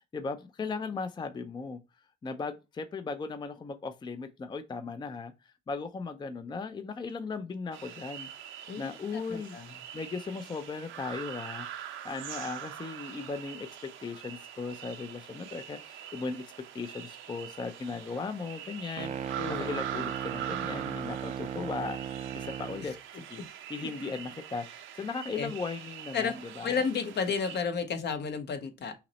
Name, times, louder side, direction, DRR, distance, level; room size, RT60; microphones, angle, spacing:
voice 1, 0.0-1.8 2.2-5.3 5.7-8.3 8.8-9.6 9.9-16.4 16.7-22.0 22.3-23.4 23.7-26.8, left 4 dB, 20° left, 0.4 m, -37 dB
sound 1, 7.7-27.6, right 10 dB, 80° right, 0.6 m, -43 dB
voice 2, 9.1-9.7 19.4-19.8 22.8-22.9 25.3-25.5 26.1-26.3 26.6-28.9, left 5 dB, 60° left, 0.8 m, -32 dB
sound 2, 19.0-22.9, right 8 dB, 40° right, 0.4 m, -37 dB
5.7 x 2.0 x 4.0 m
cardioid pair, 90°, 20 cm